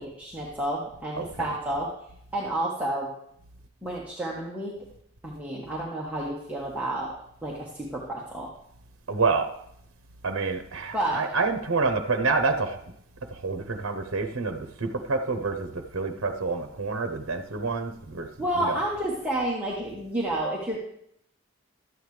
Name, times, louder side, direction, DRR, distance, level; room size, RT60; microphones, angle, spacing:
voice 1, 0.0-1.9 2.3-3.1 3.8-4.7 5.2-7.1 7.4-8.5 10.9-11.2 18.4-20.8, right 1 dB, 5° right, -5 dB, 1.2 m, -30 dB
voice 2, 9.1-9.5 10.2-12.8 13.3-18.3 18.6-18.8, right 4 dB, 80° right, 6 dB, 0.8 m, -28 dB
12.5 x 9.0 x 3.3 m, 0.72 s
head